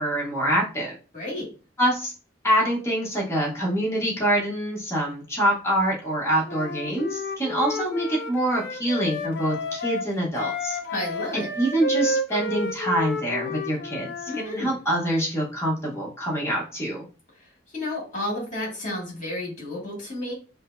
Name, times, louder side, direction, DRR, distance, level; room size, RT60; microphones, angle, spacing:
voice 1, 0.0-0.9 1.8-2.1 2.4-10.8 11.3-17.0, right 1 dB, 15° left, -4 dB, 1.0 m, -25 dB
voice 2, 1.1-1.5 10.9-11.5 14.3-14.8 17.7-20.3, left 1 dB, 40° left, -3 dB, 1.8 m, -31 dB
Wind instrument woodwind instrument, 6.5-14.5, left 1 dB, 55° left, 0.4 m, -31 dB
5.0 x 2.0 x 2.6 m, 0.36 s
head